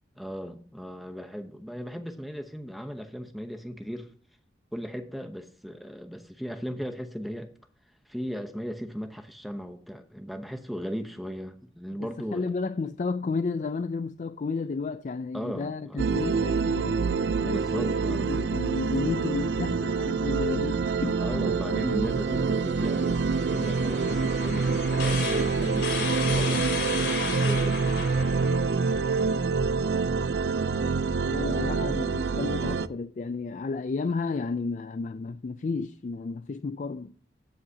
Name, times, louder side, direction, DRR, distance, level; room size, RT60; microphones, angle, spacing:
voice 1, 0.2-4.1 4.7-7.5 8.1-12.5 15.3-16.1 17.4-18.4 21.2-28.0 31.4-32.0, equal, ahead, 0.9 m, -36 dB
voice 2, 12.0-21.2 30.7-30.8 31.3-37.1, left 4 dB, 45° left, 0.4 m, -32 dB
sound 1, 16.0-32.9, right 4 dB, 75° right, 0.5 m, -26 dB
sound 2, 22.7-29.2, left 5 dB, 75° left, 3.9 m, -35 dB
16.0 x 7.5 x 2.8 m
head